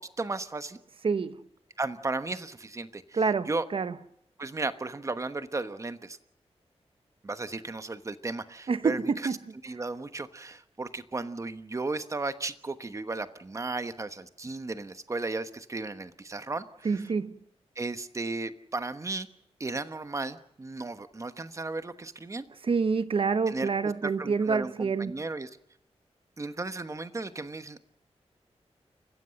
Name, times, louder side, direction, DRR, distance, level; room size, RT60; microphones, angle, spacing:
voice 1, 0.2-0.8 1.8-3.2 3.5-3.7 4.4-6.2 7.2-9.0 9.6-17.0 17.8-19.3 19.6-22.4 23.5-23.7 24.0-25.5 26.4-27.8, right 3 dB, 25° right, 1.1 m, -35 dB
voice 2, 1.0-1.4 3.1-4.0 8.7-9.4 16.8-17.4 22.6-25.1, right 5 dB, 55° right, 1.0 m, -27 dB
29.5 x 15.5 x 6.4 m
wide cardioid pair, 150°, 11 cm